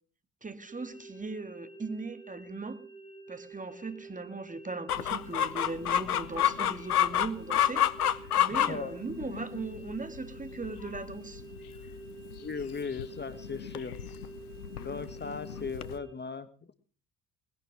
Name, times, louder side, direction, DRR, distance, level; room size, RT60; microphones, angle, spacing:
voice 1, 0.4-2.8 3.3-11.4, right 3 dB, 20° right, 2.0 m, -39 dB
sound 1, 0.7-16.1, right 3 dB, 75° right, 4.7 m, -49 dB
Chicken rooster, 4.9-16.0, left 10 dB, 90° left, 0.8 m, -31 dB
voice 2, 12.4-13.9 14.8-16.7, left 5 dB, 25° left, 1.3 m, -38 dB
20.0 x 11.0 x 6.0 m
hypercardioid pair, 60°, 44 cm